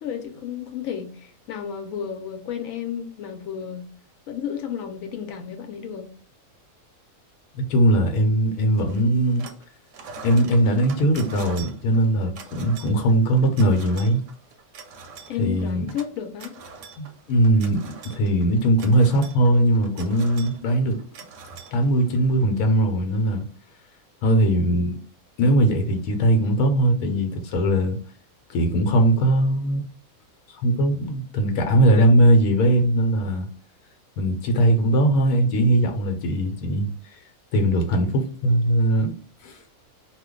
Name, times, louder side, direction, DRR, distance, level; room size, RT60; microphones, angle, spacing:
voice 1, 0.0-3.9 4.3-6.1 15.3-16.6, left 8 dB, 70° left, 1.0 m, -32 dB
voice 2, 7.5-9.5 10.2-14.2 15.4-15.9 17.0-21.0 21.7-23.4 24.2-25.0 25.4-28.0 28.5-29.8 30.5-33.5 34.2-37.2 37.5-39.1 39.4-39.6, right 1 dB, 90° left, 1.1 m, -20 dB
sound 1, 8.8-9.6 9.9-22.3, right 5 dB, 65° right, 0.8 m, -43 dB
2.5 x 2.2 x 3.6 m
omnidirectional pair, 1.5 m